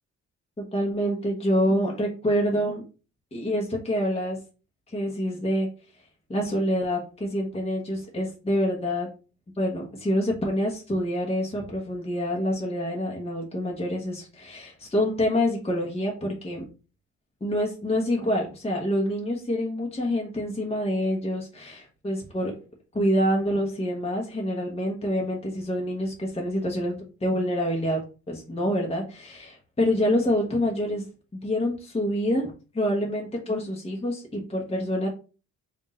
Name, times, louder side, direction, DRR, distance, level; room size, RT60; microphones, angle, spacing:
voice 1, 0.6-2.8 3.3-4.4 4.9-5.7 6.3-9.1 9.6-16.6 17.4-22.5 22.9-28.0 28.3-31.1 31.3-35.1, equal, 20° left, -1 dB, 1.1 m, -27 dB
3.5 x 2.6 x 4.1 m, 0.34 s
cardioid pair, 90°, 30 cm